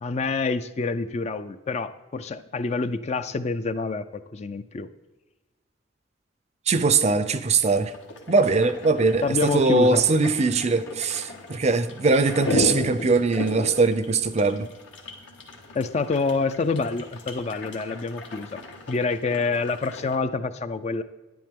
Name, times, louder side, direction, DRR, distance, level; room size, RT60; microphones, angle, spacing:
voice 1, 0.0-4.9 9.2-10.0 15.7-18.6 18.9-21.0, left 3 dB, 35° left, 11 dB, 0.4 m, -27 dB
voice 2, 6.7-7.9 8.3-14.7, right 3 dB, 35° right, 12 dB, 0.5 m, -21 dB
sound 1, 7.7-20.2, left 2 dB, 80° left, 1.5 m, -36 dB
10.5 x 10.0 x 3.6 m, 1.1 s
head